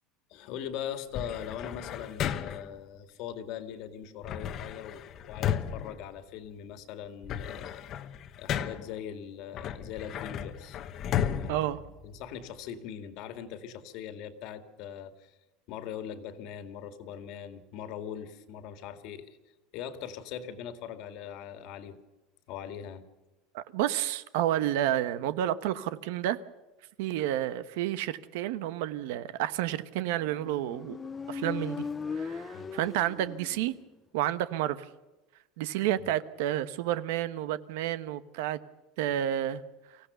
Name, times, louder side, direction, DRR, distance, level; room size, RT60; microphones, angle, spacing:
voice 1, 0.3-7.9 8.4-10.8 11.4-11.6 12.0-15.4 15.7-19.4 19.7-22.0 22.5-23.0 32.5-32.8 36.0-36.1, left 9 dB, 50° left, 2.0 m, -41 dB
sound 1, 1.1-2.8 4.2-6.7 7.1-9.0 9.5-12.6, left 9 dB, 35° left, 1.1 m, -34 dB
voice 2, 11.5-11.8 23.5-26.4 27.0-31.0 31.3-31.8 32.1-33.8 34.1-34.8 35.6-38.6 39.0-39.6, right 12 dB, 75° right, 1.0 m, -30 dB
Motorcycle, 30.2-33.9, left 5 dB, 15° left, 0.6 m, -38 dB
24.5 x 16.5 x 6.8 m
cardioid pair, 170°, 0 cm